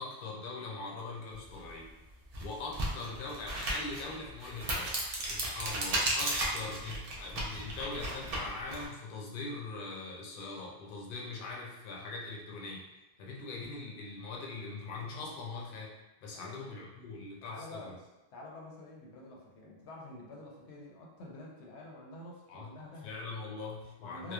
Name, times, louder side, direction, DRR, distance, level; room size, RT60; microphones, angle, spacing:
voice 1, 0.0-1.9 2.4-4.9 5.3-12.8 13.2-15.9 16.2-17.9 22.5-22.7 23.0-24.3, left 3 dB, 60° left, -2 dB, 0.7 m, -42 dB
sound 1, 1.6-1.7 2.2-8.9, right 1 dB, 55° right, 0.4 m, -34 dB
voice 2, 16.3-16.6 17.5-23.1 24.0-24.3, left 2 dB, 85° left, -2 dB, 0.9 m, -48 dB
2.9 x 2.0 x 2.2 m, 1.0 s
omnidirectional pair, 1.1 m